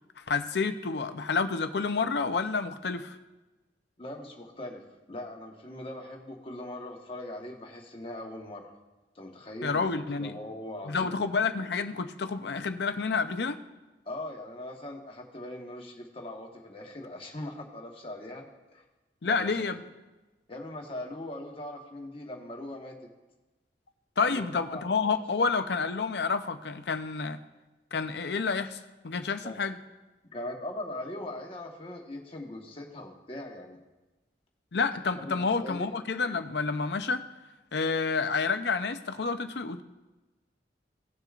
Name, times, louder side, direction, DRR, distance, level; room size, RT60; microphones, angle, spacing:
voice 1, 0.2-3.2 9.6-10.3 10.9-13.6 19.2-19.8 24.2-27.4 27.9-29.8 34.7-37.2 37.7-39.8, left 4 dB, 65° left, 9 dB, 0.6 m, -29 dB
voice 2, 4.0-4.8 5.1-8.7 9.1-9.9 10.2-11.1 14.0-18.4 18.7-18.8 19.2-19.7 20.5-23.0 24.2-25.2 29.4-29.6 30.3-33.8 35.2-35.9, left 1 dB, 30° left, 1 dB, 1.3 m, -40 dB
17.5 x 6.8 x 2.5 m, 1.1 s
head